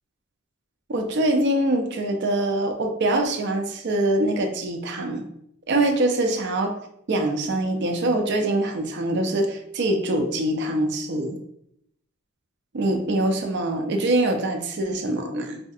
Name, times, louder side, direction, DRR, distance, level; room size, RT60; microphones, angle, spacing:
voice 1, 0.9-5.2 5.7-6.7 7.1-11.4 12.7-15.6, right 1 dB, 55° right, 4 dB, 0.5 m, -24 dB
4.2 x 2.7 x 2.4 m, 0.74 s
head